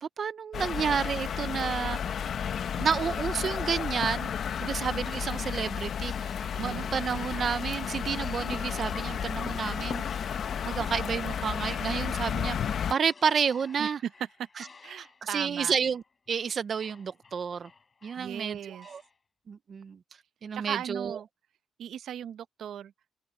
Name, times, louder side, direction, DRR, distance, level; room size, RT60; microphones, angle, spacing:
voice 1, 0.0-2.3 2.8-4.3 4.6-10.3 10.6-14.0 15.3-16.0 16.3-17.7 18.0-19.0 19.5-20.0 20.4-21.2, right 6 dB, 45° right, 0.6 m, -30 dB
sound 1, 0.5-12.9, left 8 dB, 55° left, 1.0 m, -32 dB
sound 2, 2.7-12.5 12.9-19.2, left 4 dB, 30° left, 4.3 m, -55 dB
voice 2, 6.5-6.9 13.8-14.1 14.4-14.5 14.8-15.7 18.2-18.9 20.5-21.3 21.8-22.9, right 9 dB, 75° right, 0.8 m, -37 dB
cardioid pair, 145°, 0 cm